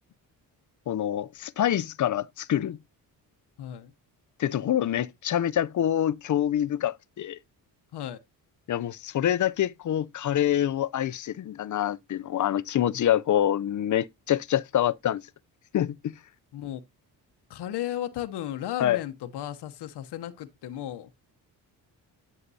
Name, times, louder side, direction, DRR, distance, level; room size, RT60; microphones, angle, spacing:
voice 1, 0.9-2.8 4.4-7.4 8.7-15.2 15.7-16.1 18.8-19.0, left 11 dB, 45° left, 0.5 m, -26 dB
voice 2, 3.6-3.9 7.9-8.2 12.9-13.1 16.5-16.8 17.5-21.1, left 12 dB, 75° left, 0.9 m, -35 dB
11.0 x 6.6 x 2.7 m
cardioid pair, 70°, 40 cm